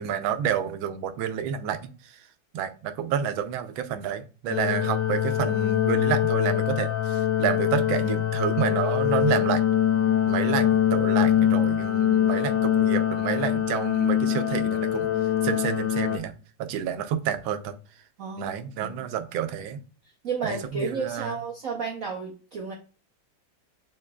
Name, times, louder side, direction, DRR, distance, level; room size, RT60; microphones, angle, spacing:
voice 1, 0.0-2.2 2.5-9.6 10.3-15.1 15.4-16.3 16.6-17.8 18.4-19.8 20.4-21.4, right 8 dB, 90° right, 1.4 m, -29 dB
sound 1, 4.5-16.2, left 10 dB, 70° left, 1.3 m, -23 dB
voice 2, 18.2-19.0 20.2-22.7, right 5 dB, 60° right, 1.0 m, -32 dB
7.1 x 3.1 x 2.2 m
omnidirectional pair, 2.1 m